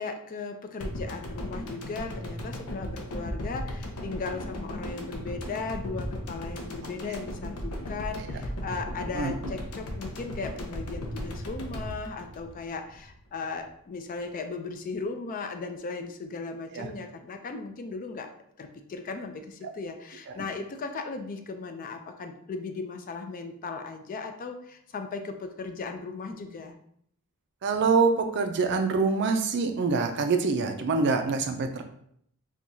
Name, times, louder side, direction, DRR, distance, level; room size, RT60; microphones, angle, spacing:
voice 1, 0.0-18.3 18.6-26.7, left 4 dB, 40° left, 6 dB, 0.3 m, -37 dB
sound 1, 0.8-13.1 13.4-13.5, left 1 dB, 85° left, 0.6 m, -36 dB
voice 2, 27.6-31.8, right 4 dB, 55° right, 6 dB, 0.4 m, -25 dB
4.4 x 2.3 x 2.7 m, 0.68 s
head